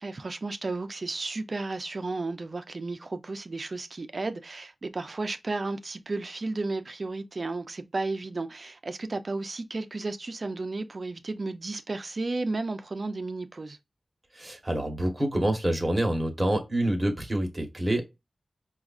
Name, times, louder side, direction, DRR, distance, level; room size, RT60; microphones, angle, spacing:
voice 1, 0.0-13.8, right 3 dB, 55° right, 0.5 m, -33 dB
voice 2, 14.3-18.0, right 1 dB, 25° right, 1.1 m, -27 dB
4.7 x 2.4 x 2.4 m
cardioid pair, 50°, 0 cm